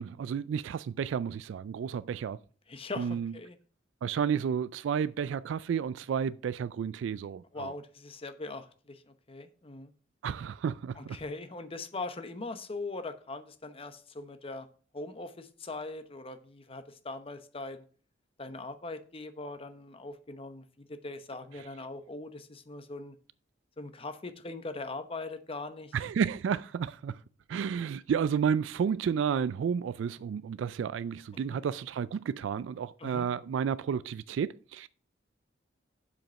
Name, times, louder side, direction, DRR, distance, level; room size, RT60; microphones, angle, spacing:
voice 1, 0.0-2.4 3.0-3.3 4.0-7.7 10.2-11.2 25.9-27.2 27.5-34.9, right 7 dB, 75° right, 0.3 m, -31 dB
voice 2, 2.7-3.6 7.5-9.9 11.0-14.7 14.9-17.8 18.4-23.1 23.8-25.9 31.3-31.6 33.0-33.3, left 3 dB, 30° left, 0.8 m, -41 dB
7.5 x 5.2 x 6.2 m
head